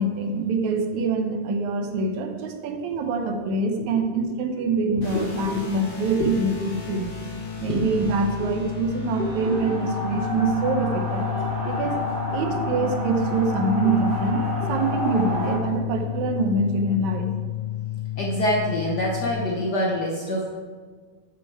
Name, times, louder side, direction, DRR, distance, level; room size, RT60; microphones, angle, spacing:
voice 1, 0.0-7.1 7.6-11.3 11.6-12.0 12.3-14.4 14.7-17.3, right 3 dB, 75° right, 5 dB, 2.3 m, -25 dB
sound 1, 5.0-19.3, left 10 dB, 40° left, 1.8 m, -32 dB
voice 2, 5.1-5.7 6.2-6.3 6.6-6.7 7.7-7.8 9.2-9.8 11.4-11.5 12.5-12.6 14.6-14.7 18.2-20.5, left 1 dB, 75° left, -2 dB, 0.9 m, -26 dB
sound 2, 9.0-15.6, equal, 45° right, 2.8 m, -30 dB
9.0 x 6.6 x 4.8 m, 1.5 s
omnidirectional pair, 3.4 m